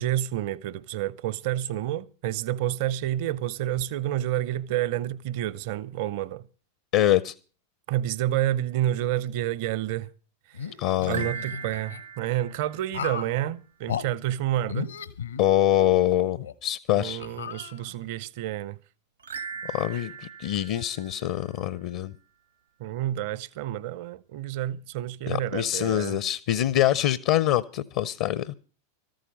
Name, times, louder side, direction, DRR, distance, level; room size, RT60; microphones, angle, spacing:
voice 1, 0.0-6.4 7.9-10.1 10.5-10.7 11.1-14.9 16.9-18.8 22.8-26.2, right 13 dB, 50° right, 0.7 m, -29 dB
voice 2, 6.9-7.3 10.8-11.3 15.4-17.2 19.7-22.1 25.3-28.5, left 13 dB, 50° left, 0.6 m, -24 dB
sound 1, 10.5-12.0 12.9-13.4 13.9-14.1 14.7-15.9 16.4-16.5 17.2-18.1, left 7 dB, 75° left, 1.0 m, -35 dB
sound 2, 11.0-13.5 19.2-21.8, right 7 dB, 75° right, 1.3 m, -40 dB
14.0 x 13.0 x 5.2 m
figure-of-eight pair, 90°, 0 cm